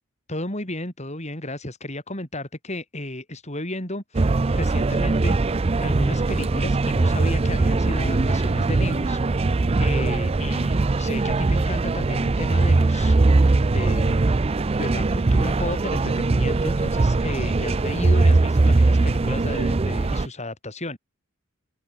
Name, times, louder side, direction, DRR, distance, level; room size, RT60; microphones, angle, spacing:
voice 1, 0.3-5.4 5.8-13.4 13.7-14.4 14.8-21.0, left 1 dB, 30° left, 5.3 m, -33 dB
sound 1, 4.1-20.3, right 3 dB, 25° right, 0.4 m, -21 dB
open air
head